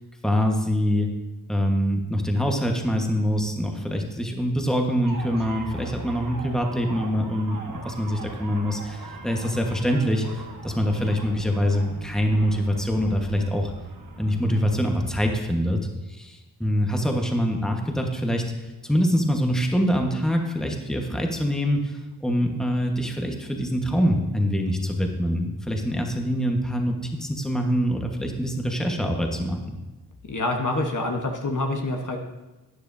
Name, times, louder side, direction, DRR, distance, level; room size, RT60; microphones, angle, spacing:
voice 1, 0.2-1.1 1.5-7.6 7.8-13.7 14.1-15.8 16.1-18.4 18.8-29.8, equal, ahead, 2 dB, 1.3 m, -24 dB
sound 1, 5.0-15.4, right 3 dB, 55° right, 1.4 m, -40 dB
voice 2, 30.3-32.2, left 2 dB, 50° left, 2 dB, 1.2 m, -26 dB
12.0 x 9.6 x 2.7 m, 1.1 s
cardioid pair, 50°, 40 cm